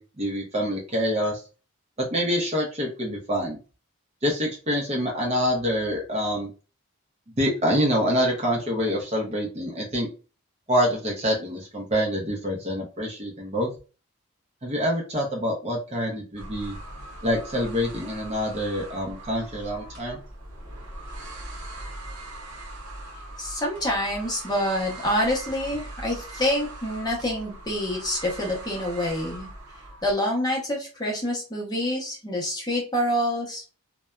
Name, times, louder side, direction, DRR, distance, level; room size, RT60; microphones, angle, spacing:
voice 1, 0.0-1.4 2.0-3.6 4.2-6.5 7.4-10.1 10.7-13.7 14.6-16.8 17.2-20.2, equal, 30° right, -1 dB, 0.6 m, -26 dB
sound 1, 16.4-30.1, right 1 dB, 85° right, 0.7 m, -40 dB
voice 2, 23.4-29.5 30.0-33.7, left 1 dB, 20° left, -2 dB, 0.7 m, -27 dB
2.6 x 2.1 x 2.2 m, 0.34 s
head